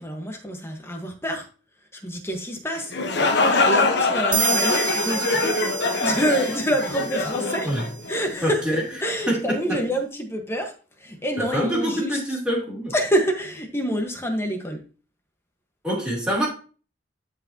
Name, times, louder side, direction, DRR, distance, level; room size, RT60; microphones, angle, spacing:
voice 1, 0.0-1.5 1.9-2.9 3.4-5.6 6.0-7.7 8.1-8.7 9.0-12.2 12.9-14.8, equal, 15° left, 1.4 m, -27 dB
sound 1, 2.8-8.5, left 3 dB, 65° left, 1.1 m, -23 dB
sound 2, 4.3-7.9, right 5 dB, 70° right, 1.1 m, -29 dB
voice 2, 8.4-8.8 9.3-9.8 11.4-12.9 15.8-16.5, equal, 5° right, 3.1 m, -25 dB
12.0 x 4.9 x 2.9 m
head